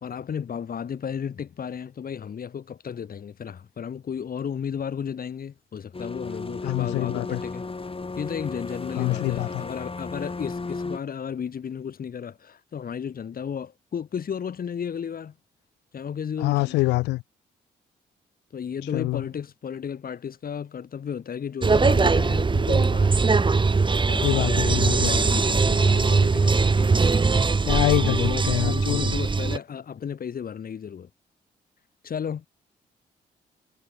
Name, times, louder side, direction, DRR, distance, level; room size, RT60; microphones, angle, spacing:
voice 1, 0.0-7.7 8.2-15.3 15.9-16.8 18.5-23.2 24.1-27.0 28.0-31.1 32.0-32.5, left 7 dB, 60° left, 2.3 m, -33 dB
sound 1, 5.9-11.0, left 3 dB, 30° left, 6.4 m, -34 dB
voice 2, 6.7-7.4 9.0-9.6 16.4-17.2 18.9-19.2 21.8-21.9 24.2-25.1 27.7-28.2 28.5-29.0, left 20 dB, 90° left, 0.7 m, -25 dB
sound 2, 21.6-29.6, right 4 dB, 30° right, 1.0 m, -21 dB
supercardioid pair, 50°, 17 cm